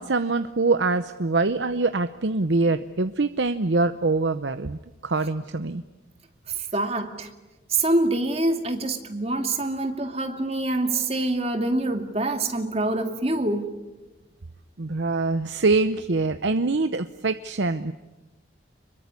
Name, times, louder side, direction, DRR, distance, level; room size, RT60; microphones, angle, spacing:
voice 1, 0.0-5.8 14.8-17.9, right 3 dB, 80° right, 10 dB, 0.9 m, -24 dB
voice 2, 6.5-7.3 7.7-13.7, right 2 dB, 35° right, 5 dB, 2.4 m, -25 dB
25.5 x 23.0 x 9.7 m, 1.1 s
head